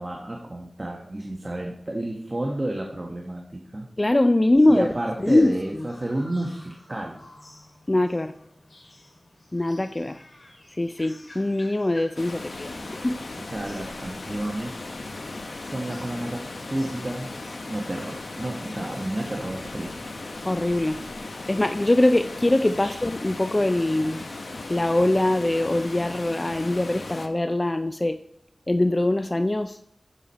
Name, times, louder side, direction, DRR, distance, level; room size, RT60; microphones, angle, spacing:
voice 1, 0.0-3.9 4.7-7.2 13.5-14.7 15.6-17.3 17.7-19.9 22.8-23.0, right 1 dB, 35° right, 0 dB, 1.1 m, -31 dB
voice 2, 4.0-4.9 5.2-5.9 7.9-8.3 9.5-10.2 10.8-13.2 20.5-21.0 21.5-24.3 24.7-28.2 28.7-29.8, left 1 dB, 30° left, 9 dB, 0.3 m, -22 dB
sound 1, 4.6-17.6, left 1 dB, 55° left, 2.4 m, -52 dB
Water, 12.2-27.3, left 2 dB, 70° left, 0.8 m, -37 dB
7.1 x 7.0 x 4.2 m, 0.76 s
wide cardioid pair, 55°, 0 cm